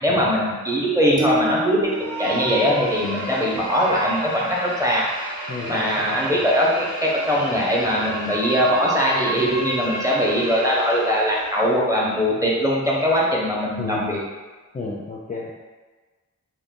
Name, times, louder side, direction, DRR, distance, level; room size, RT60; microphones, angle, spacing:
voice 1, 0.0-1.9 2.2-5.0 5.7-14.2, equal, 10° right, -5 dB, 0.7 m, -21 dB
sound 1, 1.2-3.6, equal, 40° right, 0.8 m, -30 dB
sound 2, 1.8-11.7, right 2 dB, 80° right, 1.0 m, -31 dB
voice 2, 5.5-6.4 13.8-14.2 14.7-15.5, left 3 dB, 25° left, -4 dB, 0.4 m, -33 dB
2.5 x 2.2 x 3.6 m, 1.3 s
wide cardioid pair, 70°, 31 cm